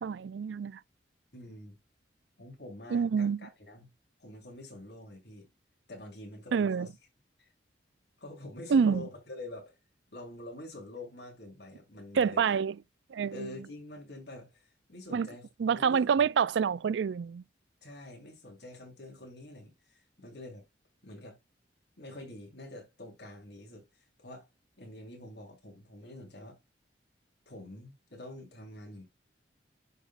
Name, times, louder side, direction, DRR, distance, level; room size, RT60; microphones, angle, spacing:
voice 1, 0.0-0.8 2.9-3.4 6.5-6.9 8.7-9.0 12.1-12.7 13.1-13.5 15.1-15.3 15.6-17.4, right 6 dB, 70° right, 0.3 m, -27 dB
voice 2, 1.3-1.8 2.4-3.9 4.2-5.5 5.9-6.9 7.4-7.5 8.2-9.8 10.1-12.4 13.3-16.2 17.8-20.7 21.0-21.4 22.0-23.9 24.2-24.5 24.8-26.6 27.5-29.0, left 1 dB, 60° left, 3.8 m, -46 dB
10.5 x 5.0 x 2.4 m
head